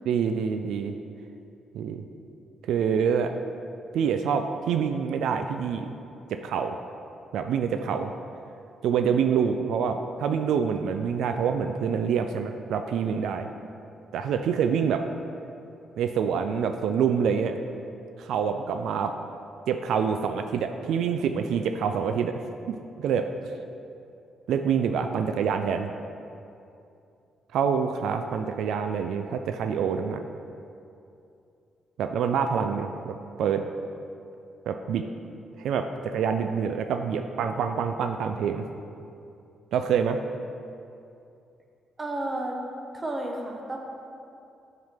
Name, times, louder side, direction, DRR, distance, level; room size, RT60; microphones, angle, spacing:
voice 1, 0.1-0.9 1.7-2.0 2.6-3.3 3.9-5.9 6.3-6.8 7.3-8.1 8.8-13.5 14.1-15.1 16.0-17.6 18.2-19.2 19.7-22.4 22.7-23.3 24.5-25.9 27.5-30.2 32.0-33.7 34.7-35.1 35.6-38.7 39.7-40.2, right 7 dB, 80° right, 7 dB, 0.3 m, -26 dB
voice 2, 42.0-42.6 42.9-43.8, right 1 dB, 20° right, 1 dB, 0.8 m, -31 dB
7.8 x 5.7 x 3.5 m, 2.6 s
cardioid pair, 140°, 0 cm